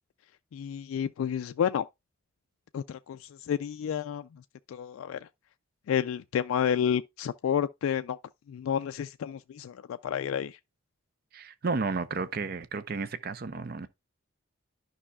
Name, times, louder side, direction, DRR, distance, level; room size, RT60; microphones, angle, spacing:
voice 1, 0.5-1.9 2.7-4.3 4.7-5.3 5.9-8.2 8.5-10.6, left 8 dB, 90° left, 0.3 m, -30 dB
voice 2, 11.3-13.9, right 4 dB, 45° right, 0.5 m, -32 dB
11.0 x 5.5 x 2.2 m
head